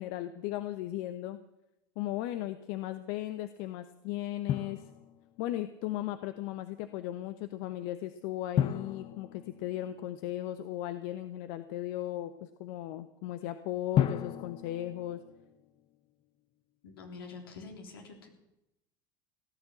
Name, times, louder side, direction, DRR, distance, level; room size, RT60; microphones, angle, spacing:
voice 1, 0.0-1.4 2.0-4.8 5.4-15.2, left 14 dB, 70° left, 10 dB, 1.0 m, -36 dB
Drum, 4.5-5.6 8.6-10.4 13.9-15.9, left 10 dB, 45° left, 0.8 m, -34 dB
voice 2, 16.8-18.3, left 4 dB, 90° left, 2 dB, 3.6 m, -46 dB
17.0 x 10.5 x 7.9 m, 0.91 s
hypercardioid pair, 90°, 12 cm